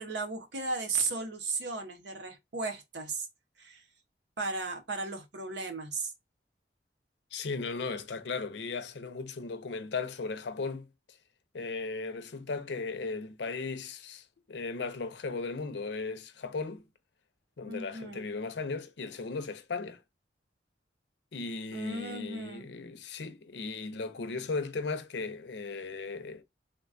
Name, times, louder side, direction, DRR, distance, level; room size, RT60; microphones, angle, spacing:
voice 1, 0.0-3.3 3.6-3.8 4.4-6.1 17.7-18.2 21.7-22.7, right 3 dB, 80° right, 0.8 m, -35 dB
voice 2, 7.3-10.9 11.5-16.8 17.6-20.0 21.3-26.4, left 4 dB, 75° left, 0.5 m, -36 dB
3.6 x 2.2 x 2.4 m
head